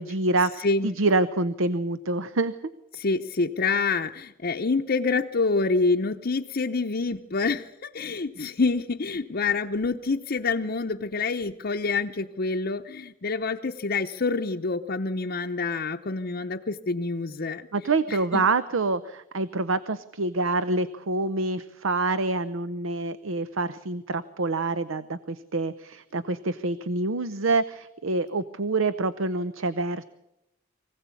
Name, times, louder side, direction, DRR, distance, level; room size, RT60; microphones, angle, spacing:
voice 1, 0.0-2.5 17.7-30.0, right 3 dB, 80° right, 14 dB, 0.8 m, -26 dB
voice 2, 0.6-0.9 2.9-17.7 18.1-18.4, left 3 dB, 50° left, 2 dB, 0.7 m, -27 dB
24.0 x 16.5 x 8.4 m, 0.88 s
head